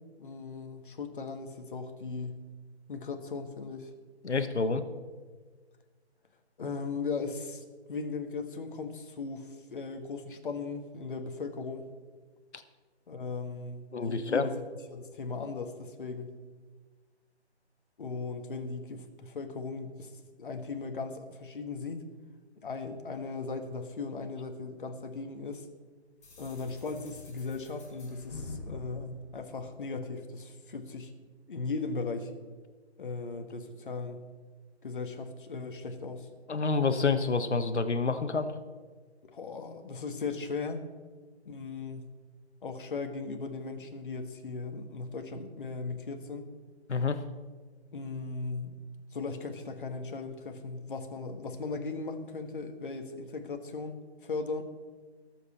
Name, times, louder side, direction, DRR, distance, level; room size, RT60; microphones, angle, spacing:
voice 1, 0.2-2.4 2.9-3.9 6.6-11.8 13.1-14.6 14.9-16.3 18.0-20.1 20.4-22.0 22.6-25.7 26.4-31.1 31.5-32.3 33.0-34.2 34.8-36.3 39.3-40.8 41.4-42.1 42.6-46.5 47.9-48.8 49.1-54.6, left 4 dB, 50° left, 6 dB, 1.6 m, -37 dB
voice 2, 4.2-4.8 12.5-12.6 13.9-14.5 36.5-38.5 46.9-47.2, left 4 dB, 85° left, 10 dB, 1.4 m, -28 dB
sound 1, 26.2-30.1, left 3 dB, 25° left, 4.6 m, -46 dB
22.5 x 7.7 x 4.3 m, 1.4 s
hypercardioid pair, 165°, 33 cm